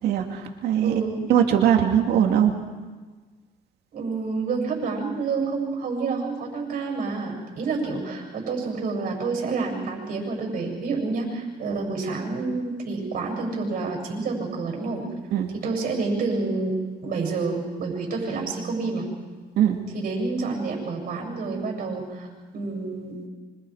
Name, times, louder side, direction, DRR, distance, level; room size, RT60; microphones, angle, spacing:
voice 1, 0.0-1.0 1.3-2.5 15.3-15.5 19.6-19.8, right 9 dB, 75° right, 4 dB, 2.6 m, -20 dB
voice 2, 0.8-1.2 3.9-15.0 15.6-16.7 17.0-19.1 19.9-22.3 22.5-23.2, right 4 dB, 55° right, 0 dB, 7.6 m, -28 dB
26.0 x 25.5 x 5.0 m, 1.4 s
cardioid pair, 110°, 17 cm